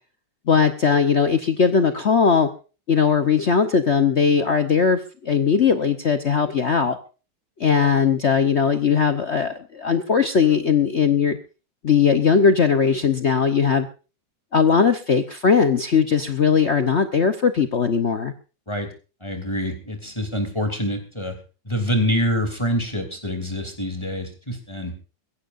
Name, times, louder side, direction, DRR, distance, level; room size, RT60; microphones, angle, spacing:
voice 1, 0.5-2.5 2.9-7.0 7.6-11.4 11.8-13.9 14.5-18.3, left 6 dB, 45° left, 8 dB, 1.0 m, -19 dB
voice 2, 19.2-21.4 21.6-24.9, equal, 15° left, 5 dB, 3.0 m, -26 dB
22.0 x 16.0 x 2.6 m, 0.34 s
omnidirectional pair, 2.0 m